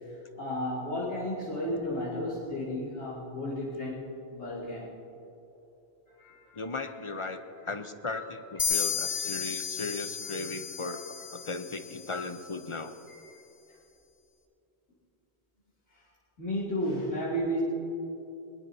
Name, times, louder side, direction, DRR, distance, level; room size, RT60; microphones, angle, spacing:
voice 1, 0.3-4.9 6.2-6.6 6.9-7.0 8.1-8.3 8.6-8.8 9.1-9.3 10.2-10.3 10.8-11.0 12.1-12.2 13.1-13.2 16.4-17.6, equal, 85° left, -9 dB, 3.0 m, -34 dB
voice 2, 6.5-11.0 11.3-13.0, left 3 dB, 35° left, 8 dB, 0.6 m, -37 dB
sound 1, 8.6-12.2, left 7 dB, 55° left, 1.4 m, -33 dB
21.5 x 20.0 x 2.7 m, 3.0 s
omnidirectional pair, 1.1 m